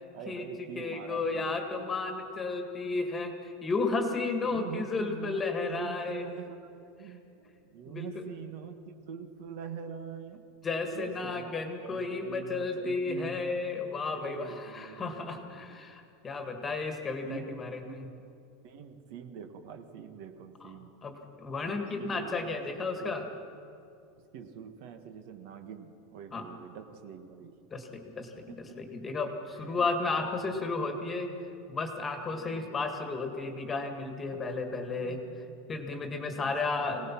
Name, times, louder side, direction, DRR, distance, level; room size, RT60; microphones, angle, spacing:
voice 1, 0.1-1.6 4.4-10.5 10.8-11.5 11.8-13.7 14.0-15.8 17.2-17.6 17.8-18.3 18.6-20.9 21.6-23.2 24.2-27.6 28.5-28.7 29.5-30.9 32.2-32.8 34.3-35.6 36.3-37.1, right 7 dB, 55° right, 7 dB, 1.5 m, -45 dB
voice 2, 0.8-6.2 7.9-8.2 10.6-18.1 20.6-20.7 21.0-23.2 26.3-26.5 27.7-31.3 31.7-35.2 35.7-37.0, left 3 dB, 15° left, 5 dB, 1.8 m, -33 dB
25.0 x 18.0 x 6.0 m, 2.7 s
supercardioid pair, 165°, 0 cm